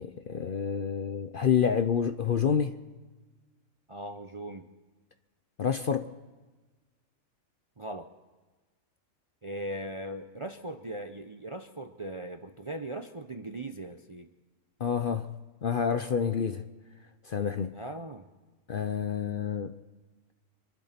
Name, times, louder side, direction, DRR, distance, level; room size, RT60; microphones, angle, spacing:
voice 1, 0.0-2.8 5.6-6.1 14.8-15.3 15.6-16.7 17.2-17.8 18.7-19.7, left 7 dB, 55° left, 0.7 m, -28 dB
voice 2, 3.9-4.7 7.8-8.1 9.4-14.3 17.7-18.3, right 1 dB, 35° right, 0.5 m, -39 dB
26.5 x 12.0 x 4.3 m
omnidirectional pair, 1.4 m